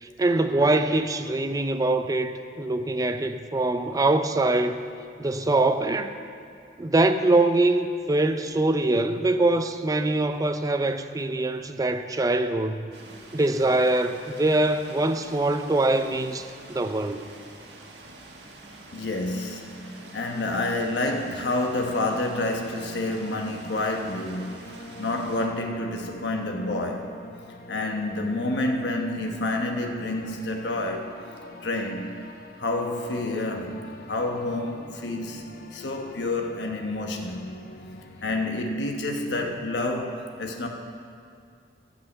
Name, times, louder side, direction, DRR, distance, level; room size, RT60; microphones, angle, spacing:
voice 1, 0.0-4.8 5.2-6.1 6.8-12.9 13.3-17.3, right 2 dB, 20° right, 8 dB, 0.4 m, -23 dB
sound 1, 12.9-25.5, right 2 dB, 75° right, 1.4 m, -47 dB
voice 2, 18.9-27.1 27.7-31.1 31.6-32.1 32.6-33.8 34.1-35.4 35.7-37.4 38.2-40.7, left 2 dB, 80° left, 2 dB, 1.2 m, -29 dB
sound 2, 20.0-38.6, left 2 dB, 60° left, 0.8 m, -45 dB
13.0 x 5.6 x 8.1 m, 2.4 s
head